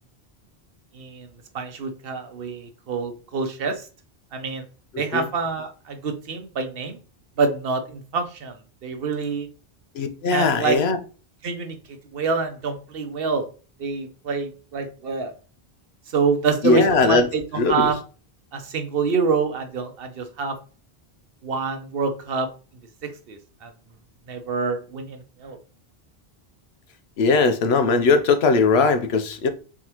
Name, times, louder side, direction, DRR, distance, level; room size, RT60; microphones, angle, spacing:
voice 1, 0.9-1.3 1.5-3.8 4.3-4.6 5.0-7.0 7.4-8.6 8.8-9.5 10.3-10.8 11.4-11.8 12.1-13.5 13.8-15.3 16.1-18.0 18.5-20.6 21.4-22.5 23.0-23.7 24.3-25.6, right 4 dB, 65° right, 1.0 m, -26 dB
voice 2, 10.0-11.0 16.6-17.3 17.6-17.9 27.2-29.5, left 4 dB, 90° left, 0.9 m, -19 dB
4.1 x 3.6 x 2.9 m
omnidirectional pair, 1.0 m